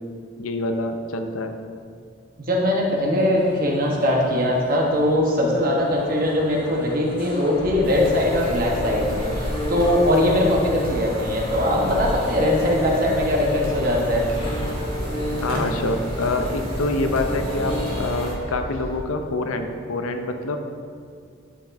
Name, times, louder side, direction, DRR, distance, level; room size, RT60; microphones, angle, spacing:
voice 1, 0.4-1.5 15.4-20.6, left 2 dB, 85° left, 6 dB, 0.6 m, -26 dB
sound 1, 2.5-18.3, equal, 25° left, 1.1 m, -37 dB
voice 2, 2.5-14.2, left 1 dB, 40° right, -2 dB, 1.1 m, -21 dB
sound 2, 7.5-19.0, equal, 50° left, 1.4 m, -34 dB
sound 3, 7.8-18.3, equal, 80° right, 1.9 m, -31 dB
11.5 x 5.6 x 2.6 m, 2.2 s
head